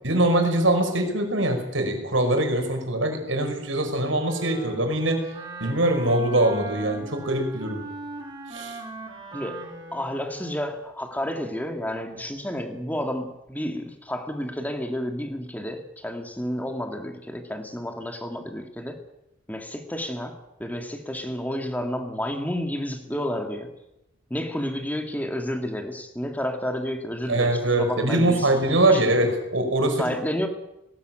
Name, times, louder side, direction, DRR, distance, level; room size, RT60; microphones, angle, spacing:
voice 1, 0.0-5.2 5.6-7.8 8.5-8.8 27.3-30.0, right 1 dB, 80° right, 5 dB, 5.5 m, -23 dB
Wind instrument woodwind instrument, 4.1-10.8, right 2 dB, 25° right, 5.5 m, -39 dB
voice 2, 9.3-9.6 9.9-19.0 19.5-23.7 24.3-28.5 28.9-29.0 30.0-30.5, equal, 10° left, 5 dB, 2.1 m, -31 dB
19.0 x 18.5 x 9.1 m, 0.88 s
head